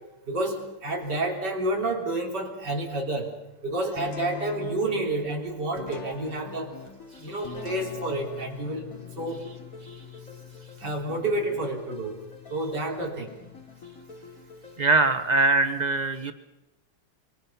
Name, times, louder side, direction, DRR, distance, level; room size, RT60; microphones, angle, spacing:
voice 1, 0.3-3.3 3.6-6.8 7.2-8.8 9.2-9.4 10.8-12.2 12.5-13.4, right 2 dB, 55° right, 0 dB, 4.1 m, -29 dB
sound 1, 4.0-15.4, left 7 dB, 60° left, 1.9 m, -43 dB
sound 2, 6.5-15.2, left 4 dB, 40° left, 3.6 m, -49 dB
voice 2, 14.8-16.3, right 3 dB, 80° right, 9 dB, 0.3 m, -22 dB
24.5 x 24.5 x 5.7 m, 0.96 s
omnidirectional pair, 2.3 m